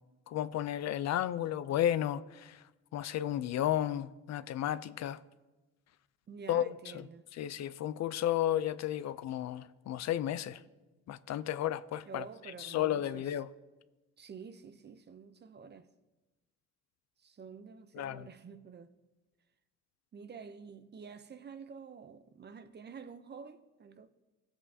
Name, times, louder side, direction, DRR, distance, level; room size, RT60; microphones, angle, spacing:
voice 1, 0.3-2.6 2.9-5.2 6.5-6.7 6.9-7.1 7.4-10.6 11.1-12.2 12.6-13.5 17.9-18.3, left 11 dB, 60° left, 0.4 m, -33 dB
voice 2, 6.3-7.3 12.1-13.4 14.2-15.9 17.2-18.9 20.1-24.1, right 6 dB, 35° right, 0.6 m, -49 dB
17.5 x 7.9 x 2.7 m
cardioid pair, 90°, 30 cm